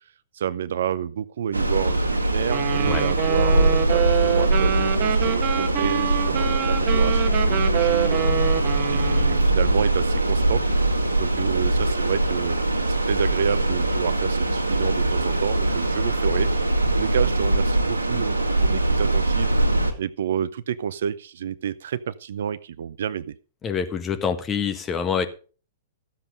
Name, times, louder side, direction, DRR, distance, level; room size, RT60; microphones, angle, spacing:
voice 1, 0.3-10.6 11.2-12.6 12.9-16.5 16.9-19.5 20.0-23.4, right 8 dB, 65° right, 0.6 m, -29 dB
sound 1, 1.5-19.9, right 2 dB, 90° right, 2.1 m, -22 dB
Wind instrument woodwind instrument, 2.5-9.5, right 10 dB, 40° right, 1.4 m, -26 dB
voice 2, 23.6-25.3, left 6 dB, 20° left, 1.5 m, -26 dB
13.5 x 7.6 x 5.3 m
figure-of-eight pair, 110°, 0 cm